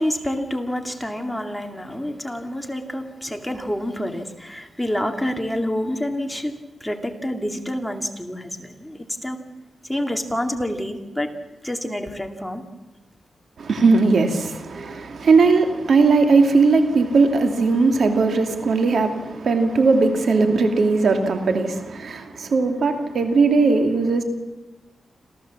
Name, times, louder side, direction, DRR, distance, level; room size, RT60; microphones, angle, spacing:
voice 1, 0.0-9.5 9.9-11.3 11.6-12.6, left 1 dB, 5° left, 2.4 m, -28 dB
voice 2, 13.6-24.2, right 4 dB, 70° right, 2.6 m, -18 dB
27.0 x 15.0 x 7.4 m
cardioid pair, 75°, 0 cm